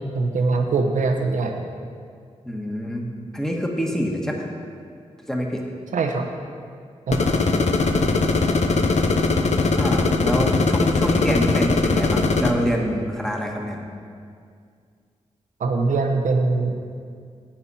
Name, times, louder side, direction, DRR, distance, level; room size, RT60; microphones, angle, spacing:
voice 1, 0.0-1.7 5.9-6.3 7.1-7.3 15.6-16.7, right 3 dB, 85° right, 4 dB, 0.9 m, -22 dB
voice 2, 2.4-3.1 3.3-4.5 5.3-5.6 9.7-13.8, equal, 5° left, 0 dB, 1.5 m, -26 dB
sound 1, 7.1-12.5, left 3 dB, 60° left, 0.8 m, -20 dB
10.0 x 8.8 x 4.2 m, 2.2 s
cardioid pair, 60°, 13 cm